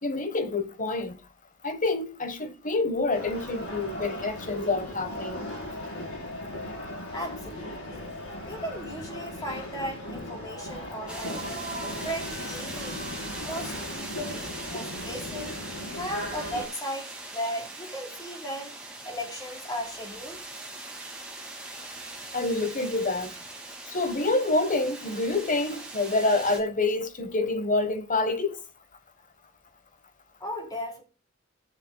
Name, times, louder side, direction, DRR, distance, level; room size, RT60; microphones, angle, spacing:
voice 1, 0.0-1.2 1.6-5.5 22.3-23.4 23.9-28.6, left 2 dB, 40° left, 1.2 m, -27 dB
sound 1, 3.1-16.7, left 1 dB, 80° left, 4.7 m, -37 dB
voice 2, 7.1-8.1 8.4-11.5 12.0-13.1 13.4-15.6 15.9-18.7 19.0-20.4 30.4-31.0, equal, 20° left, 3.4 m, -36 dB
sound 2, 11.1-26.6, right 2 dB, 5° right, 2.1 m, -41 dB
18.0 x 7.3 x 2.2 m
head